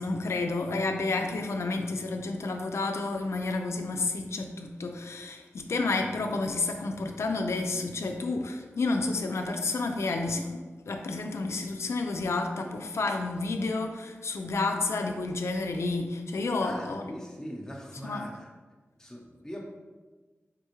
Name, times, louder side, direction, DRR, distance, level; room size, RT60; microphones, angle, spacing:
voice 1, 0.0-17.1 18.0-18.3, left 3 dB, 75° left, 4 dB, 0.3 m, -30 dB
voice 2, 16.6-18.5 19.0-19.7, equal, 10° left, -1 dB, 0.7 m, -41 dB
3.5 x 3.4 x 2.9 m, 1.3 s
wide cardioid pair, 70°, 5 cm